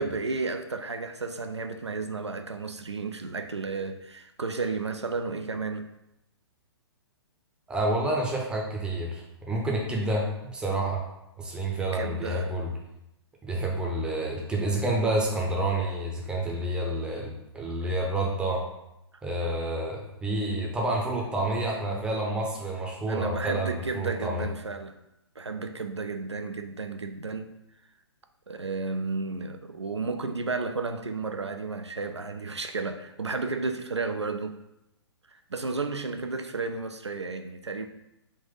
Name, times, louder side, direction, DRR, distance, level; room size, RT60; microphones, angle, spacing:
voice 1, 0.0-5.9 11.9-12.5 17.8-17.9 23.1-25.0 25.4-27.5 28.5-34.6 35.3-37.9, right 4 dB, 85° right, 0.4 m, -32 dB
voice 2, 7.7-11.1 11.4-12.7 13.4-18.6 19.2-24.4, right 1 dB, 5° right, 0.6 m, -29 dB
3.7 x 2.5 x 3.8 m
figure-of-eight pair, 120°, 14 cm